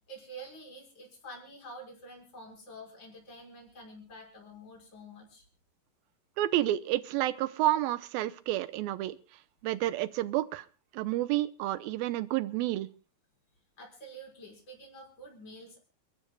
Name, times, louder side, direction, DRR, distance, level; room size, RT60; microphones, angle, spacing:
voice 1, 0.1-5.4 13.8-15.8, right 1 dB, 30° left, 0 dB, 6.3 m, -48 dB
voice 2, 6.4-9.2 9.6-10.7 10.9-12.9, right 15 dB, 85° right, 14 dB, 2.7 m, -30 dB
29.5 x 12.5 x 2.3 m, 0.33 s
omnidirectional pair, 4.1 m